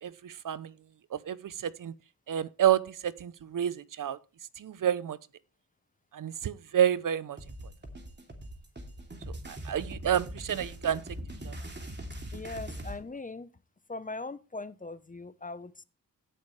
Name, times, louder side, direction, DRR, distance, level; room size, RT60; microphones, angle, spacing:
voice 1, 0.0-0.7 1.1-1.9 2.3-4.2 4.6-5.2 6.1-7.4 9.5-11.0 11.4-11.5, right 10 dB, 60° right, 0.7 m, -29 dB
sound 1, 7.4-13.0, right 1 dB, 30° right, 2.9 m, -41 dB
voice 2, 12.3-13.5 13.9-15.8, left 3 dB, 20° left, 0.8 m, -40 dB
17.0 x 6.5 x 3.2 m
cardioid pair, 65°, 36 cm